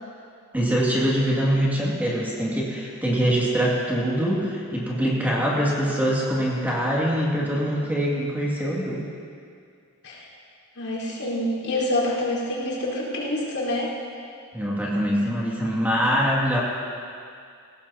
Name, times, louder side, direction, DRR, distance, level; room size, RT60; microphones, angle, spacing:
voice 1, 0.5-9.0 14.5-16.6, equal, 10° right, -5 dB, 2.3 m, -23 dB
voice 2, 10.8-13.9, left 1 dB, 75° left, -6 dB, 4.4 m, -27 dB
20.0 x 17.0 x 2.9 m, 2.3 s
head